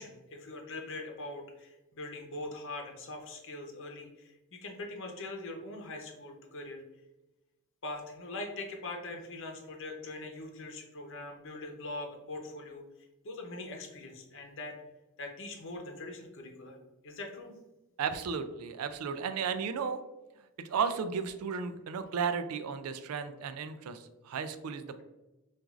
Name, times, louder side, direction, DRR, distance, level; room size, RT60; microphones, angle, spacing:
voice 1, 0.0-6.8 7.8-12.8 13.2-14.8 15.2-16.8 17.0-17.5, left 2 dB, 60° left, 2 dB, 0.8 m, -42 dB
voice 2, 18.0-20.0 20.6-25.0, right 6 dB, 90° right, 10 dB, 0.4 m, -34 dB
6.0 x 2.5 x 2.5 m, 1.0 s
head